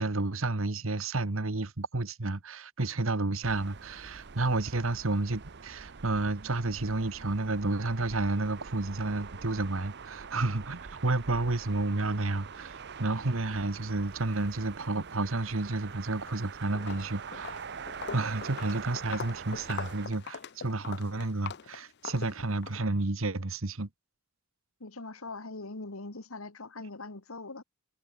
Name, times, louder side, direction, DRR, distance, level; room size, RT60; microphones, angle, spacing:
voice 1, 0.0-17.6 18.1-23.9, right 2 dB, 70° right, 1.4 m, -31 dB
sound 1, 3.4-20.1, right 6 dB, 55° right, 0.8 m, -44 dB
Walk footsteps, 16.1-16.4 16.7-22.8, left 6 dB, 55° left, 0.7 m, -42 dB
voice 2, 24.8-27.6, left 3 dB, 85° left, 2.0 m, -42 dB
head